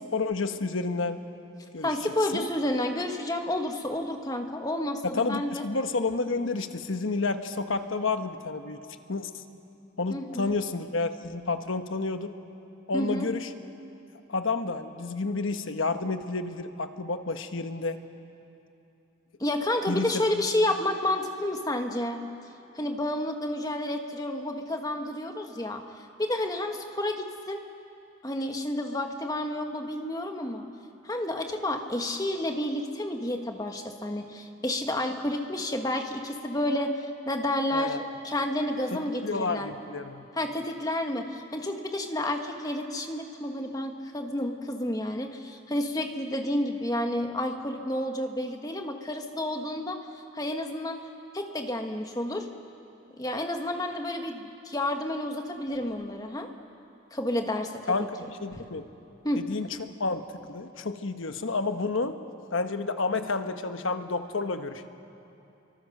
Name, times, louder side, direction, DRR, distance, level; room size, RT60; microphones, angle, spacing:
voice 1, 0.1-1.2 1.7-1.9 2.3-2.5 5.0-8.8 9.1-9.4 10.0-12.3 12.9-13.5 14.3-18.0 19.9-20.1 20.4-20.5 37.7-38.0 38.9-40.3 57.9-58.9 59.4-62.2 62.5-64.9, left 3 dB, 85° left, 8 dB, 1.2 m, -30 dB
voice 2, 1.8-5.6 10.1-10.5 12.9-13.3 19.4-22.2 22.7-25.8 26.2-27.6 28.2-30.6 31.0-39.7 40.3-50.0 50.3-51.0 51.3-52.5 53.2-56.5 57.1-57.9 59.2-59.4, left 1 dB, 20° left, 4 dB, 1.4 m, -30 dB
30.0 x 23.5 x 6.6 m, 2.8 s
head